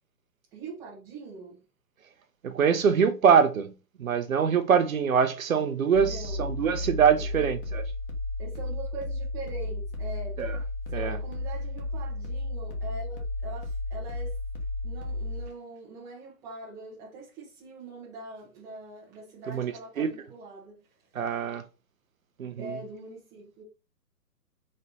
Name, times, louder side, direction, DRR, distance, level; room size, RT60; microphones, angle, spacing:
voice 1, 0.5-1.6 6.0-6.5 7.2-7.5 8.4-10.4 10.9-14.3 14.8-20.8 22.6-23.6, right 2 dB, 5° right, 0.7 m, -43 dB
voice 2, 2.4-3.7 4.0-7.6 10.4-10.5 10.9-11.2 19.5-20.1 21.1-21.6 22.4-22.8, right 7 dB, 55° right, 0.7 m, -24 dB
sound 1, 5.9-15.5, left 2 dB, 35° left, 1.2 m, -33 dB
4.1 x 3.2 x 4.0 m
hypercardioid pair, 145°, 48 cm